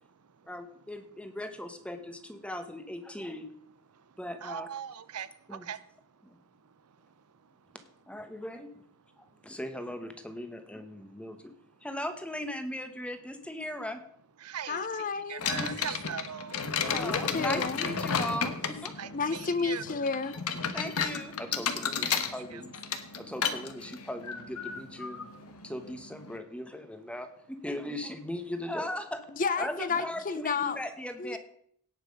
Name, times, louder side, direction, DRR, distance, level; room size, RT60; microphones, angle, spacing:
voice 1, 0.5-3.5 4.2-4.7 5.5-5.6 6.2-6.4 8.1-8.7 9.4-11.5 11.8-14.0 15.6-15.7 16.8-18.9 20.7-22.8 23.2-25.3 25.6-29.2 29.6-31.4, left 1 dB, 5° left, 8 dB, 1.1 m, -38 dB
voice 2, 4.4-5.3 5.7-5.8 14.4-14.9 15.3-16.5 19.0-19.8 22.1-22.2 22.5-22.6, right 8 dB, 85° right, 16 dB, 0.6 m, -39 dB
voice 3, 14.7-15.4 16.9-17.9 19.1-20.4 29.4-30.8 31.2-31.4, left 4 dB, 40° left, 14 dB, 0.7 m, -31 dB
sound 1, 15.4-26.4, left 6 dB, 75° left, 1.2 m, -33 dB
17.5 x 5.8 x 5.3 m, 0.65 s
head